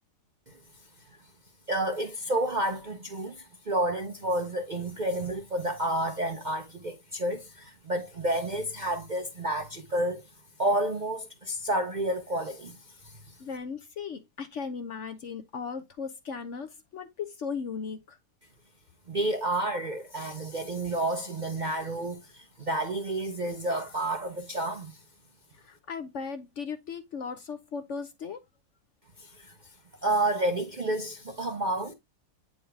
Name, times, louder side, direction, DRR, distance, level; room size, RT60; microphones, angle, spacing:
voice 1, 1.7-10.2 10.6-12.8 13.0-13.1 19.1-24.9 29.2-29.5 30.0-31.9, right 1 dB, 40° right, 0.6 m, -30 dB
voice 2, 13.4-18.2 25.5-28.4, left 5 dB, 55° left, 0.9 m, -37 dB
8.6 x 3.9 x 3.4 m
omnidirectional pair, 1.7 m